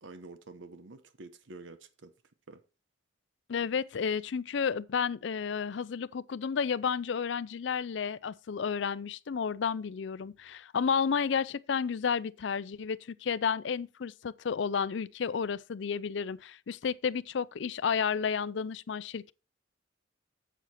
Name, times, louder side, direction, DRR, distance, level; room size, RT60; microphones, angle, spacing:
voice 1, 0.0-2.1 2.5-2.6, right 3 dB, 80° right, 0.9 m, -48 dB
voice 2, 3.5-19.3, left 6 dB, 70° left, 0.4 m, -31 dB
7.9 x 7.5 x 4.2 m
head